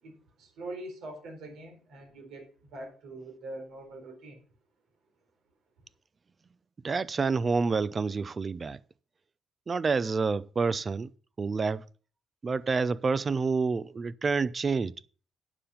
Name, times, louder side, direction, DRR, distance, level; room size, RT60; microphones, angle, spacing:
voice 1, 0.0-4.4, right 1 dB, 80° right, 4.0 m, -43 dB
voice 2, 6.8-8.8 9.7-11.1 11.4-11.8 12.4-14.9, right 4 dB, 35° right, 0.6 m, -28 dB
9.8 x 6.9 x 5.7 m
cardioid pair, 90°, 0 cm